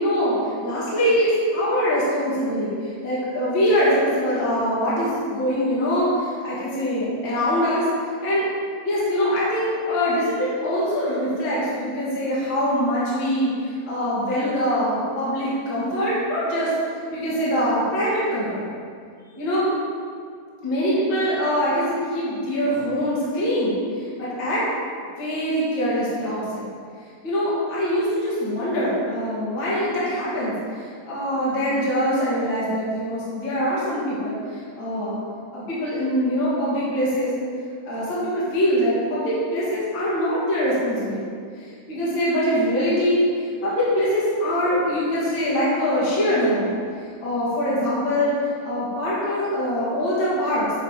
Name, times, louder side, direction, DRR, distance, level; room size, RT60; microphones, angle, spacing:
voice 1, 0.0-7.8 8.2-8.5 8.8-16.7 17.1-18.6 19.4-19.7 20.6-24.6 25.2-26.7 27.2-35.2 35.5-37.3 37.9-41.2 41.5-43.2 43.6-48.3 48.6-50.7, equal, 35° left, -9 dB, 2.4 m, -23 dB
9.1 x 4.7 x 5.1 m, 2.2 s
omnidirectional pair, 4.6 m